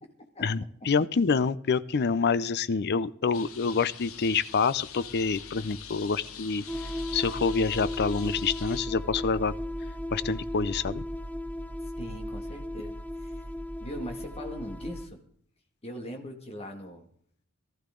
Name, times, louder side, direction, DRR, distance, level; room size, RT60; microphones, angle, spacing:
voice 1, 0.4-6.6 7.1-9.5 10.1-11.0, left 5 dB, 50° left, 16 dB, 0.5 m, -27 dB
sound 1, 3.3-8.8, left 8 dB, 65° left, 1.0 m, -44 dB
sound 2, 6.7-15.1, left 1 dB, 5° left, 0.7 m, -35 dB
voice 2, 11.8-13.4 13.8-15.2 15.8-17.1, equal, 25° left, 3 dB, 2.1 m, -41 dB
18.5 x 13.0 x 3.8 m, 0.63 s
head